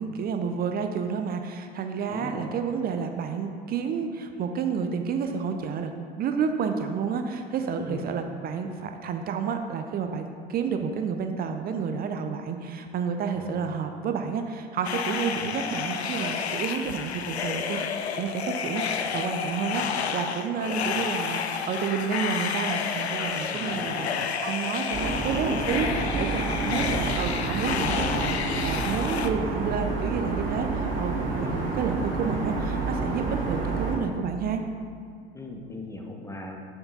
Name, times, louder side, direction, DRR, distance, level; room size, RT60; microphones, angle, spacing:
voice 1, 0.0-5.9 6.2-17.8 18.1-34.6, right 6 dB, 30° right, 6 dB, 0.5 m, -30 dB
voice 2, 2.1-2.5 7.8-8.2 13.3-13.8 15.3-15.6 23.5-24.1 26.7-26.9 29.3-29.8 31.4-31.9 35.3-36.6, left 2 dB, 10° left, 2 dB, 0.9 m, -40 dB
sound 1, 14.8-29.3, left 7 dB, 80° left, 0.5 m, -30 dB
sound 2, 24.9-34.0, right 3 dB, 45° right, 1.7 m, -29 dB
7.7 x 5.9 x 3.9 m, 2.2 s
figure-of-eight pair, 75°, 32 cm